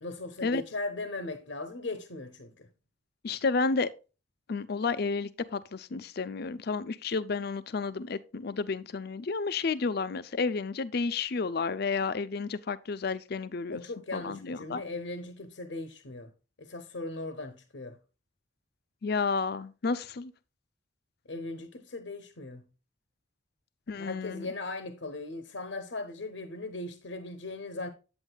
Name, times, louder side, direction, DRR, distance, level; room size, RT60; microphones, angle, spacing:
voice 1, 0.0-2.7 13.7-16.3 16.6-18.0 21.3-22.7 23.9-27.9, left 2 dB, 75° left, 0.9 m, -38 dB
voice 2, 3.2-3.9 4.5-13.8 14.1-14.8 19.0-20.3 23.9-24.5, left 4 dB, 55° left, 0.5 m, -31 dB
8.6 x 8.1 x 2.3 m
head